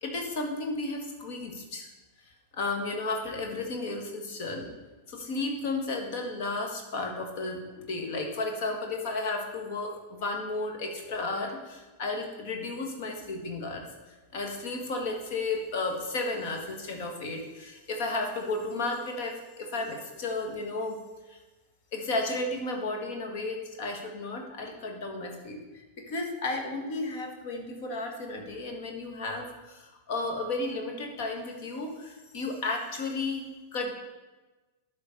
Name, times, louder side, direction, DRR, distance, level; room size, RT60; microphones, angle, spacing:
voice 1, 0.0-1.9 2.5-4.7 5.1-13.9 14.3-21.0 21.3-21.4 21.9-33.4 33.7-33.9, left 2 dB, 50° left, 3 dB, 1.7 m, -33 dB
11.5 x 4.0 x 6.7 m, 1.2 s
figure-of-eight pair, 90°, 0 cm